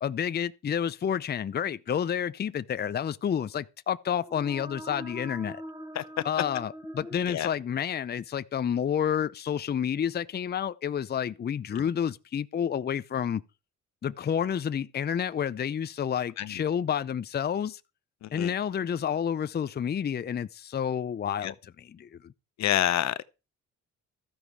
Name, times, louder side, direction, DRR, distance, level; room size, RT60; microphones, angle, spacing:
voice 1, 0.0-5.6 6.2-13.4 14.0-17.8 18.3-22.3, left 8 dB, 35° left, 0.6 m, -30 dB
sound 1, 4.1-8.0, equal, 5° right, 3.9 m, -43 dB
voice 2, 18.2-18.5 21.4-21.5 22.6-23.2, left 12 dB, 65° left, 0.8 m, -28 dB
13.5 x 9.8 x 4.7 m
cardioid pair, 90°, 30 cm